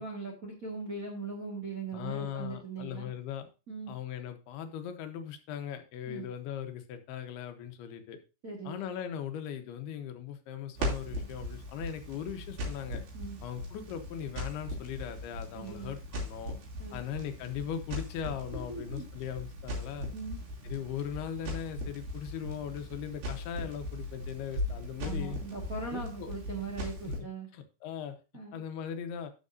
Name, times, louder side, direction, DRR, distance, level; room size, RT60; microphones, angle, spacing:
voice 1, 0.0-3.1 3.7-3.9 6.1-6.3 8.4-8.8 13.1-13.4 15.5-15.9 16.8-17.0 18.5-19.0 20.1-20.4 25.0-27.5 28.3-28.6, right 4 dB, 40° right, 0 dB, 1.3 m, -40 dB
voice 2, 1.9-3.5 3.9-8.2 8.6-13.0 13.4-16.6 16.9-20.1 20.6-25.4 25.9-26.3 27.0-27.3 27.5-28.2 28.5-29.3, left 9 dB, 90° left, 7 dB, 3.0 m, -39 dB
Crackle, 10.7-27.2, left 1 dB, 70° right, 4.8 m, -39 dB
13.5 x 6.4 x 2.6 m, 0.31 s
omnidirectional pair, 4.4 m